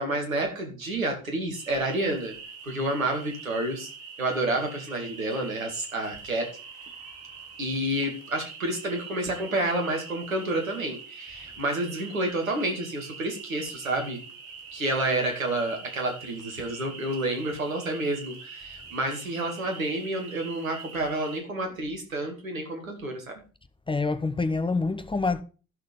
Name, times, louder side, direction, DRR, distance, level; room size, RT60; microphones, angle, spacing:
voice 1, 0.0-2.4 2.6-3.9 4.2-6.5 7.6-14.2 14.7-23.2, right 1 dB, 80° right, 2.3 m, -29 dB
sound 1, 1.5-21.4, right 5 dB, 60° right, 3.4 m, -44 dB
voice 2, 23.9-25.4, left 3 dB, 15° left, 0.8 m, -26 dB
12.5 x 6.6 x 5.2 m
figure-of-eight pair, 55°, 40 cm